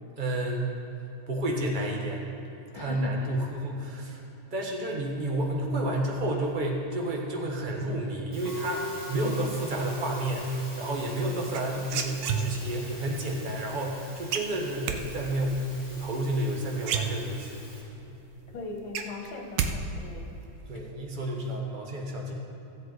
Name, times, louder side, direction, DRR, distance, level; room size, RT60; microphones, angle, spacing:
voice 1, 0.2-0.7 1.3-2.2 2.7-4.2 4.5-17.7 18.0-18.2 20.7-22.3, right 1 dB, 30° right, 0 dB, 1.0 m, -30 dB
voice 2, 2.8-3.1 9.1-9.5 18.5-20.3, left 3 dB, 65° left, 1 dB, 2.0 m, -39 dB
Musical instrument, 8.3-17.8, left 1 dB, 10° left, 2.3 m, -42 dB
sound 1, 11.5-12.8 14.3-15.0 16.4-16.5 16.8-17.6 18.1-18.2 18.5-19.7 20.0-20.5, right 7 dB, 70° right, 1.2 m, -30 dB
14.5 x 7.7 x 4.0 m, 3.0 s
omnidirectional pair, 2.3 m